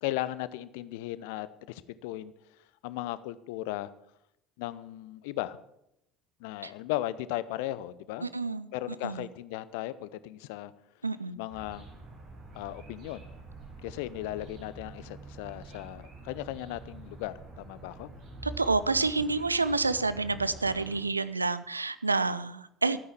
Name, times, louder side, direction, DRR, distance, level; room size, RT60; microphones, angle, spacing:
voice 1, 0.0-2.3 2.8-3.9 4.6-5.6 6.4-8.3 8.7-10.7 11.4-11.8 12.5-13.2 13.8-18.1, left 15 dB, 60° left, 16 dB, 0.6 m, -36 dB
voice 2, 8.2-8.7 9.0-9.2 11.0-11.4 18.4-23.0, right 3 dB, 85° right, 15 dB, 0.5 m, -28 dB
sound 1, 11.5-21.0, right 3 dB, 50° right, 5.1 m, -47 dB
13.0 x 9.5 x 7.4 m, 0.81 s
figure-of-eight pair, 60°, 0 cm